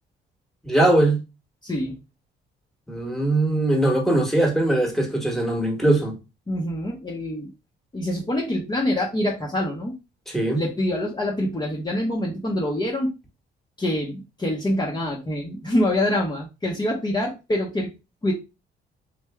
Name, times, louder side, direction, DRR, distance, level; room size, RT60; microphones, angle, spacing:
voice 1, 0.6-1.2 2.9-6.1 10.3-10.6, right 1 dB, ahead, 1.4 m, -21 dB
voice 2, 1.6-2.0 6.5-7.5 7.9-9.9 10.5-13.1 13.8-17.9 18.2-18.3, left 1 dB, 20° left, 1.0 m, -25 dB
3.2 x 2.6 x 3.4 m
cardioid pair, 90°, 20 cm